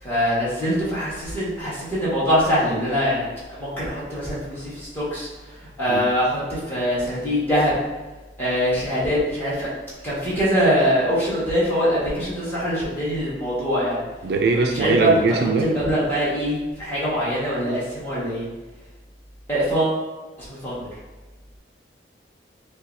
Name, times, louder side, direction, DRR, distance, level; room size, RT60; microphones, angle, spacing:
voice 1, 0.0-7.7 8.4-9.7 10.0-14.0 14.5-15.1 15.6-18.5 19.5-20.0 20.4-20.9, equal, 10° left, -9 dB, 1.5 m, -23 dB
voice 2, 14.2-15.7, right 4 dB, 55° right, 3 dB, 0.3 m, -21 dB
6.4 x 2.3 x 2.6 m, 1.2 s
head